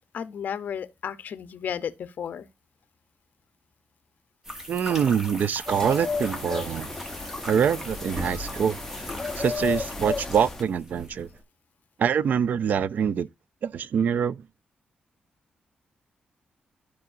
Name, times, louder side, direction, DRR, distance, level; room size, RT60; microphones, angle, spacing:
voice 1, 0.1-2.5, left 8 dB, 60° left, 0.7 m, -33 dB
sound 1, 4.4-11.4, equal, 10° right, 1.1 m, -40 dB
voice 2, 4.7-6.9 7.5-8.8 9.3-11.3 12.0-13.3 13.6-14.4, right 7 dB, 55° right, 0.3 m, -25 dB
sound 2, 5.7-10.6, left 4 dB, 10° left, 1.0 m, -33 dB
13.5 x 4.8 x 2.5 m
wide cardioid pair, 145°, 3 cm